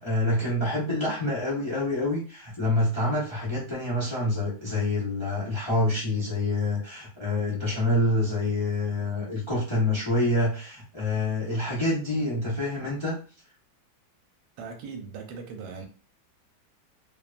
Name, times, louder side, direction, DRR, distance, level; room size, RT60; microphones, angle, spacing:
voice 1, 0.0-13.2, left 1 dB, 30° left, 0.5 m, -27 dB
voice 2, 14.6-15.9, right 5 dB, 80° right, 1.2 m, -39 dB
2.9 x 2.2 x 2.4 m
omnidirectional pair, 1.9 m